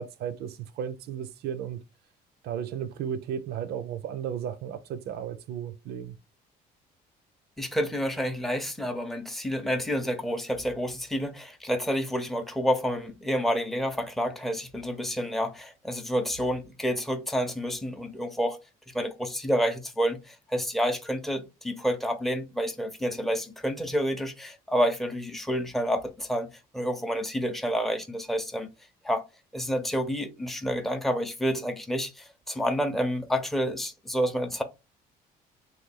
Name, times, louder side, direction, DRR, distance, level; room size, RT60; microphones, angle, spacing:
voice 1, 0.0-1.8 2.4-6.2, right 8 dB, 75° right, 0.5 m, -34 dB
voice 2, 7.6-18.6 18.9-26.5 26.7-28.7 29.0-29.2 29.5-34.6, equal, ahead, 0.6 m, -29 dB
3.2 x 2.3 x 3.6 m
cardioid pair, 110°, 17 cm